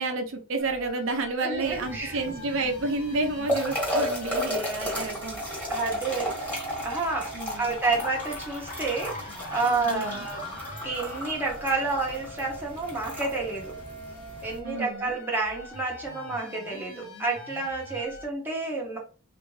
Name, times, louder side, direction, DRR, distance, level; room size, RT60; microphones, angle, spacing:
voice 1, 0.0-5.4 7.3-7.7 9.8-10.2 14.6-15.2, right 3 dB, 65° right, 0.6 m, -30 dB
sound 1, 0.6-18.2, equal, 75° left, 0.9 m, -43 dB
voice 2, 1.4-2.2 3.9-4.1 5.7-6.6 6.8-9.2 9.5-10.4 10.8-13.7 14.4-19.0, right 3 dB, 10° right, 1.0 m, -30 dB
sound 2, 1.6-14.6, equal, 5° left, 1.5 m, -34 dB
Laughter, 8.0-12.0, left 3 dB, 40° left, 0.6 m, -43 dB
3.4 x 2.6 x 3.1 m
head